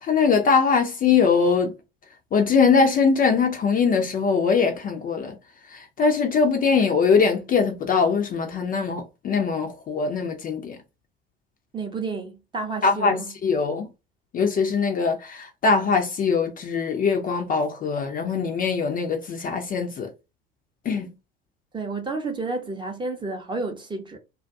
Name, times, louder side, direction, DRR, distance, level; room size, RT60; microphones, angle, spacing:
voice 1, 0.0-1.7 2.3-5.3 5.7-10.8 12.8-13.9 14.3-20.1 20.9-21.1, left 5 dB, 30° left, 0.5 m, -22 dB
voice 2, 11.7-13.3 21.7-24.2, right 3 dB, 15° right, 0.6 m, -31 dB
2.3 x 2.2 x 2.5 m
figure-of-eight pair, 70°, 31 cm